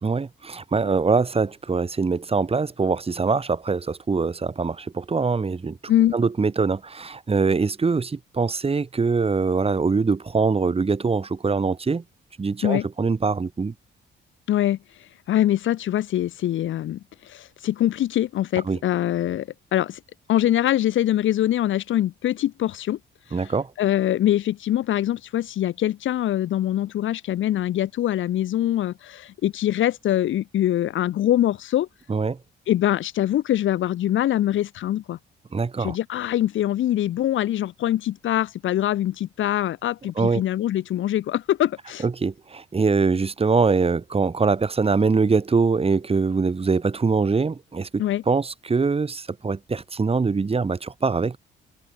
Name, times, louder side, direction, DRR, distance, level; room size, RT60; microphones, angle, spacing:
voice 1, 0.0-12.0 12.4-13.7 18.7-18.8 23.3-23.7 32.1-32.4 35.5-36.0 40.2-40.4 42.0-51.4, right 4 dB, 30° right, 3.0 m, -23 dB
voice 2, 14.5-14.8 15.3-20.0 20.3-23.0 23.8-31.9 32.7-35.2 35.8-42.0 48.0-48.2, left 12 dB, 75° left, 4.3 m, -23 dB
cardioid pair, 90°, 20 cm